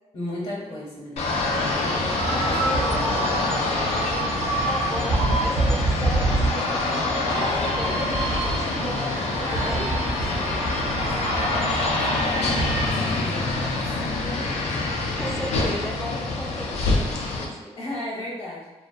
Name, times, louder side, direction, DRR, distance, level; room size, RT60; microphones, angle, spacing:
voice 1, 0.1-1.4 2.0-3.4 7.3-8.3 9.4-12.3 12.8-14.9 17.8-18.7, left 1 dB, 55° left, -6 dB, 0.8 m, -36 dB
sound 1, 1.2-17.5, left 2 dB, 75° left, 0.4 m, -26 dB
sound 2, 2.1-12.9, right 2 dB, 80° right, 0.5 m, -27 dB
voice 2, 2.2-3.1 4.6-9.9 15.1-17.8, equal, ahead, -1 dB, 0.3 m, -35 dB
2.2 x 2.2 x 2.6 m, 1.1 s
wide cardioid pair, 145°, 11 cm